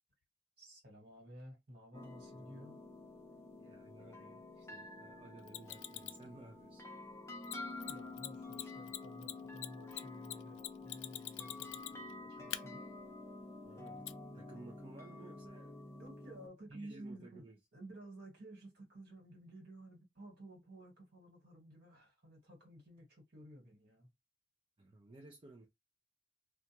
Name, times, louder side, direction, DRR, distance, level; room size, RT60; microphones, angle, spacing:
voice 1, 0.6-2.8 7.7-12.8 16.0-17.4 17.7-24.1, right 1 dB, 60° right, 1.6 m, -54 dB
sound 1, 1.9-16.5, left 2 dB, 15° left, 0.6 m, -49 dB
voice 2, 2.3-2.7 3.6-6.9 13.6-14.1 14.3-15.8 16.7-17.6 24.8-25.7, right 2 dB, 30° right, 0.5 m, -56 dB
Mechanisms, 5.5-6.2 7.4-7.5 7.8-7.9 8.2-8.3 8.5-12.1 12.5-12.6 14.1-14.2, left 14 dB, 90° left, 0.3 m, -43 dB
2.4 x 2.3 x 2.8 m
head